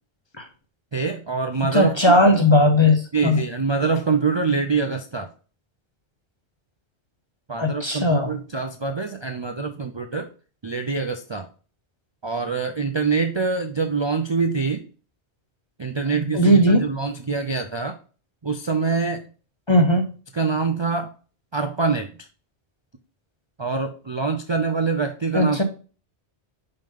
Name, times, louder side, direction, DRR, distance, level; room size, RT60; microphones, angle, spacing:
voice 1, 0.9-1.9 3.1-5.3 7.5-10.3 10.6-11.5 12.2-14.8 15.8-18.0 18.4-19.2 20.3-21.1 21.5-22.1 23.6-25.6, right 4 dB, 40° right, 6 dB, 0.4 m, -25 dB
voice 2, 1.7-3.4 7.6-8.3 16.3-16.9 19.7-20.0 25.3-25.6, left 1 dB, 30° left, 5 dB, 0.6 m, -17 dB
5.7 x 5.2 x 3.6 m, 0.37 s
omnidirectional pair, 1.1 m